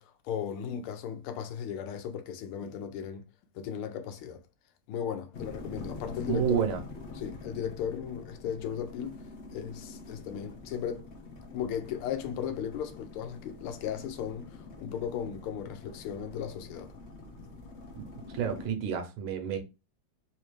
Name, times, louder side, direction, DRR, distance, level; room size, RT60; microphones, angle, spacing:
voice 1, 0.0-3.2 3.5-4.4 4.9-6.7 7.1-9.2 9.5-11.1 11.5-16.9, left 8 dB, 90° left, 1.6 m, -36 dB
sound 1, 5.3-18.7, left 3 dB, 65° left, 0.7 m, -45 dB
voice 2, 6.3-6.8 18.3-19.6, right 8 dB, 80° right, 1.6 m, -29 dB
4.2 x 2.8 x 3.1 m
omnidirectional pair, 2.3 m